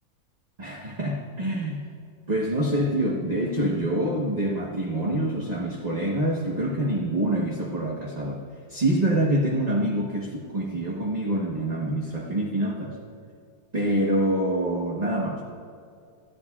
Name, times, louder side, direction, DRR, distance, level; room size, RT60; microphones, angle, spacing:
voice 1, 0.6-1.8 2.3-8.4 8.7-13.0 13.7-15.4, right 1 dB, 30° right, -2 dB, 1.1 m, -26 dB
25.0 x 14.0 x 2.4 m, 2.3 s
omnidirectional pair, 1.7 m